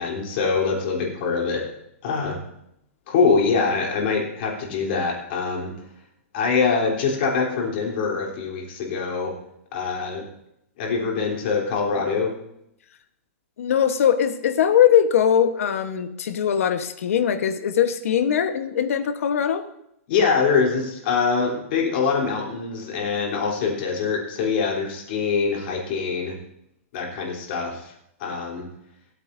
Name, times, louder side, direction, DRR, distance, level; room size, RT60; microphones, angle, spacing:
voice 1, 0.0-1.6 2.0-2.4 3.1-5.7 6.3-9.3 9.7-10.2 10.8-12.3 20.1-26.3 26.9-27.9 28.2-28.7, left 5 dB, 45° left, -1 dB, 3.4 m, -24 dB
voice 2, 13.6-19.7, left 9 dB, 70° left, 9 dB, 1.2 m, -21 dB
26.5 x 9.1 x 2.7 m, 0.78 s
hypercardioid pair, 165°, 8 cm